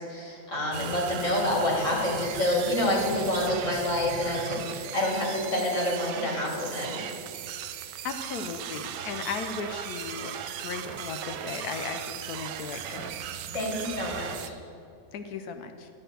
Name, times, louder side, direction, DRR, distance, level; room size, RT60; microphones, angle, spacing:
voice 1, 0.0-7.0 13.5-14.5, left 1 dB, 45° left, -2 dB, 2.4 m, -28 dB
sound 1, 0.7-14.5, right 10 dB, 80° right, 1.2 m, -37 dB
voice 2, 8.0-10.3 10.6-13.1 15.1-15.9, left 5 dB, 70° left, 8 dB, 1.1 m, -36 dB
11.5 x 4.4 x 7.8 m, 2.4 s
omnidirectional pair, 1.9 m